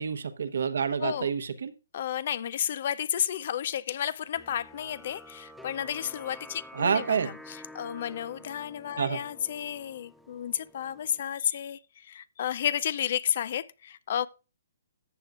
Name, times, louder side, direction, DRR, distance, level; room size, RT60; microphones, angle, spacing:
voice 1, 0.0-1.7 6.7-7.3 9.0-9.2, right 6 dB, 75° right, 1.1 m, -28 dB
voice 2, 1.9-14.3, left 10 dB, 50° left, 0.6 m, -32 dB
sound 1, 4.3-11.2, left 1 dB, 5° left, 0.5 m, -49 dB
14.0 x 8.1 x 2.4 m
hypercardioid pair, 150°, 0 cm